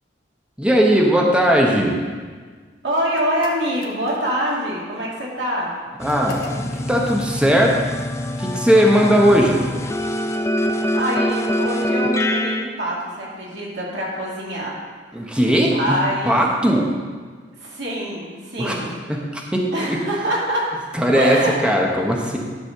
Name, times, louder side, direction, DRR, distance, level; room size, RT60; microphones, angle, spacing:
voice 1, 0.6-2.0 6.0-6.4 6.9-7.7 8.4-9.6 15.1-16.0 16.3-16.9 18.6-18.8 19.1-20.0 20.9-22.4, equal, 5° right, -1 dB, 0.9 m, -18 dB
voice 2, 2.8-5.7 10.8-14.8 15.7-16.4 17.5-19.0 19.7-20.7 21.1-21.6, equal, 80° right, -5 dB, 2.5 m, -25 dB
sound 1, 3.1-4.5 6.1-6.9, left 3 dB, 55° left, 1.2 m, -37 dB
sound 2, 6.0-12.6, equal, 15° left, 0.5 m, -24 dB
11.5 x 4.1 x 6.6 m, 1.6 s
head